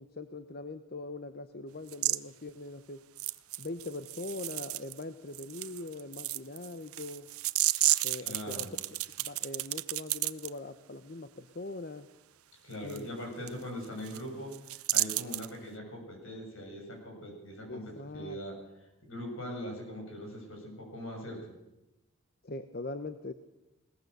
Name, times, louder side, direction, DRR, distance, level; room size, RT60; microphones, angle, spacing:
voice 1, 0.0-3.0 3.6-7.3 8.0-8.7 9.2-12.1 12.8-13.1 17.7-18.4 22.4-23.3, left 2 dB, 45° left, 10 dB, 0.8 m, -41 dB
sound 1, 1.9-2.2 3.2-5.0 5.3-10.5 12.9-13.0 13.5-13.6 13.8-14.2 14.5-15.5, right 17 dB, 90° right, 0.7 m, -32 dB
voice 2, 8.2-8.7 12.6-14.5 14.9-18.6 19.0-21.4, equal, 65° left, 2 dB, 7.1 m, -41 dB
21.0 x 19.0 x 6.7 m, 0.97 s
head